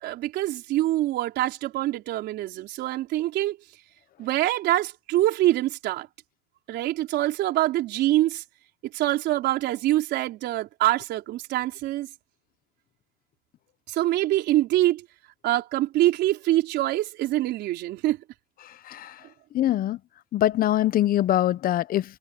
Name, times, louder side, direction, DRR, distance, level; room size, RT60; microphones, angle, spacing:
voice 1, 0.0-3.6 4.2-6.1 6.7-8.4 8.9-12.1 13.9-15.0 15.4-18.2, right 15 dB, 80° right, 4.4 m, -25 dB
voice 2, 19.5-20.0 20.3-22.0, left 13 dB, 60° left, 0.8 m, -23 dB
cardioid pair, 110°, 17 cm